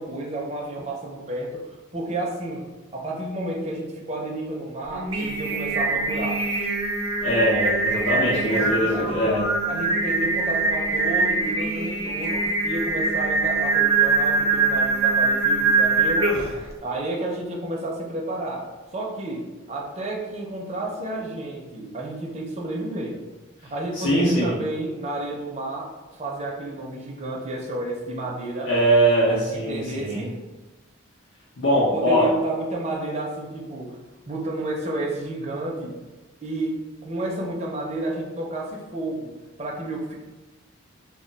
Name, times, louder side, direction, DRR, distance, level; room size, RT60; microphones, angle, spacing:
voice 1, 0.0-1.6 1.9-2.7 2.9-6.4 8.1-9.3 9.7-16.4 16.8-18.7 18.9-23.2 23.6-28.7 29.5-30.4 31.9-34.0 34.3-36.0 36.4-36.8 37.0-39.3 39.6-40.1, right 2 dB, 30° right, -1 dB, 0.4 m, -31 dB
Singing, 4.9-16.6, right 3 dB, 90° right, 0.6 m, -23 dB
voice 2, 7.2-9.4 23.9-24.5 28.6-30.2 31.6-32.3, right 1 dB, 75° left, -7 dB, 0.7 m, -21 dB
2.2 x 2.1 x 3.8 m, 1.2 s
head